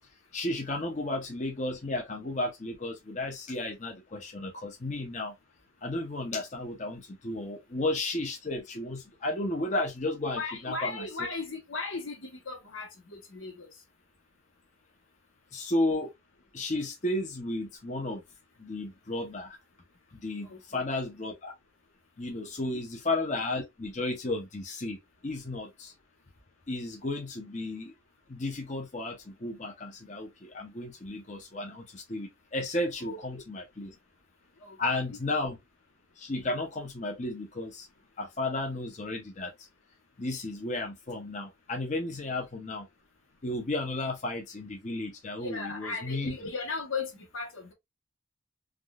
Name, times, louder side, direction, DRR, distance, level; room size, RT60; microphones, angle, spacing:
voice 1, 0.3-5.4 5.8-11.1 15.5-16.1 16.5-18.2 18.6-19.6 20.1-21.5 22.2-25.9 26.7-27.9 28.3-34.0 34.8-35.6 36.2-37.9 38.2-39.7 40.2-42.9 43.4-46.3, left 2 dB, 35° left, 0.6 m, -33 dB
voice 2, 10.3-13.7 20.4-20.9 22.7-22.8 33.0-33.4 34.6-35.2 42.2-42.3 45.4-47.7, left 3 dB, 85° left, 1.1 m, -37 dB
3.5 x 2.3 x 2.3 m
head